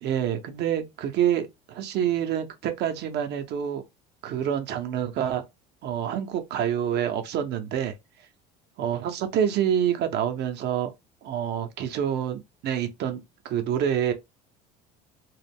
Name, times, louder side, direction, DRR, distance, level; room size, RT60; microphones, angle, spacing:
voice 1, 0.0-3.8 4.2-5.4 5.8-7.9 8.8-10.9 11.2-14.1, right 9 dB, 55° right, 0.7 m, -27 dB
2.3 x 2.0 x 3.4 m
supercardioid pair, 90°, 21 cm